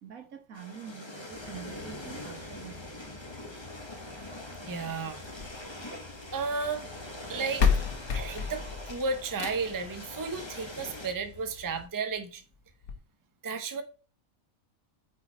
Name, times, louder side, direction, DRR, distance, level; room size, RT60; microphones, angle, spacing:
voice 1, 0.0-3.1, right 8 dB, 75° right, 1.8 m, -46 dB
sound 1, 0.5-11.1, left 1 dB, 20° left, 1.5 m, -43 dB
sound 2, 1.3-11.9, left 4 dB, 35° left, 3.6 m, -51 dB
voice 2, 4.7-5.2 6.3-6.9 7.3-7.7 8.1-12.4 13.4-13.8, right 4 dB, 20° right, 0.7 m, -33 dB
sound 3, 5.2-6.4 7.2-7.3 7.6-9.9 11.2-11.3 11.8-11.9 12.2-12.3 12.8-12.9, left 6 dB, 85° left, 1.6 m, -30 dB
8.9 x 4.7 x 4.4 m
omnidirectional pair, 1.5 m